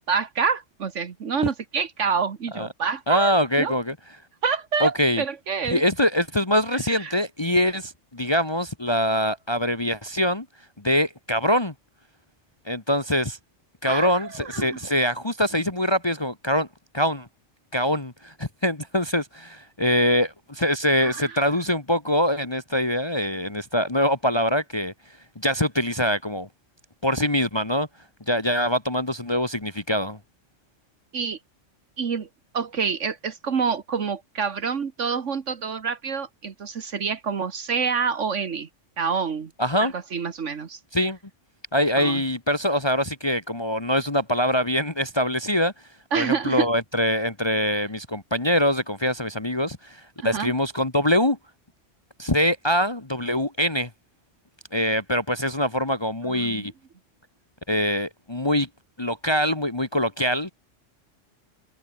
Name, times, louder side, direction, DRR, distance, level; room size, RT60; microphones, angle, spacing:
voice 1, 0.0-3.7 4.4-5.8 6.9-7.1 13.8-14.8 21.0-21.4 31.1-31.4 32.0-32.3 32.5-38.7 39.0-39.5 39.8-40.8 41.9-42.2 46.1-46.7 47.7-47.8 50.2-50.5 56.3-56.7, right 6 dB, 75° right, 1.7 m, -27 dB
voice 2, 3.1-3.9 4.8-5.2 5.7-10.5 10.8-11.7 12.6-13.4 13.8-16.7 16.9-17.3 17.7-24.9 25.3-26.5 27.0-27.9 28.3-30.2 39.6-39.9 40.9-41.2 41.7-45.7 46.1-51.4 52.2-53.9 54.7-56.7 57.7-58.7 59.0-60.5, equal, 20° left, 1.6 m, -24 dB
omnidirectional pair, 1.3 m